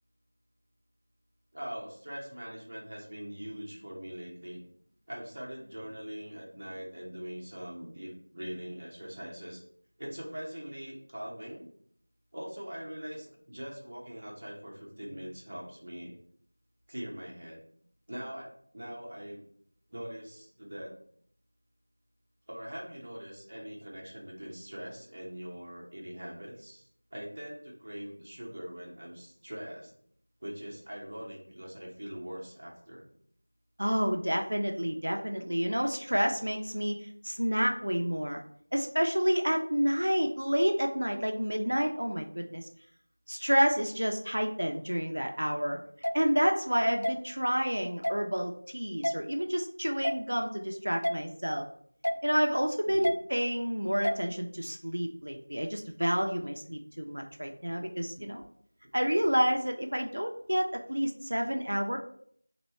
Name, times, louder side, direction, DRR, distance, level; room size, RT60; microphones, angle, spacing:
voice 1, 1.5-4.6 5.1-9.6 10.0-11.7 12.3-16.1 16.9-17.6 18.1-19.4 19.9-21.0 22.5-29.9 30.4-33.0 52.8-53.2 58.2-58.3, equal, 25° right, -4 dB, 0.8 m, -42 dB
voice 2, 33.8-38.4 38.7-42.7 43.3-45.8 46.1-51.6 52.2-58.4 58.9-62.0, equal, 70° right, 2 dB, 0.6 m, -29 dB
sound 1, 46.0-46.2 47.0-47.2 48.0-48.2 49.0-49.2 50.0-50.2 51.0-51.2 52.0-52.2 53.0-53.2 54.0-54.2, equal, 75° left, 0.3 m, -28 dB
3.1 x 3.0 x 4.2 m, 0.62 s
figure-of-eight pair, 175°, 0 cm